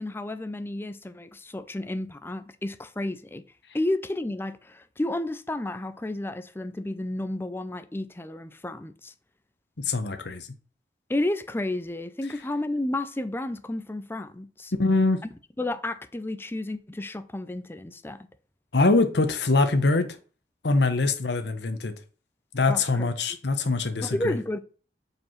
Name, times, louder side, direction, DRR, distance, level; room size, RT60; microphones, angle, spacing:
voice 1, 0.0-3.4 3.7-9.1 11.1-14.7 15.6-18.2 22.7-23.1 24.0-24.6, left 1 dB, 15° left, 0.5 m, -31 dB
voice 2, 9.8-10.5 14.7-15.2 18.7-20.1 20.6-21.9 22.5-24.4, left 3 dB, 70° left, 0.9 m, -23 dB
5.2 x 4.7 x 5.7 m
head